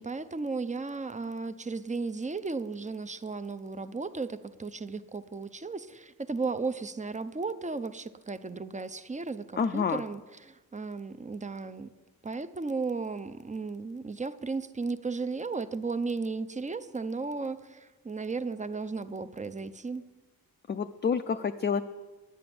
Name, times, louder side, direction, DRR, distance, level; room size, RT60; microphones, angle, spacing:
voice 1, 0.0-11.9 12.2-20.1, right 4 dB, 20° right, 11 dB, 0.5 m, -35 dB
voice 2, 9.6-10.0 20.7-21.8, left 6 dB, 30° left, 7 dB, 0.4 m, -28 dB
10.5 x 8.9 x 7.7 m, 1.2 s
wide cardioid pair, 105°, 35 cm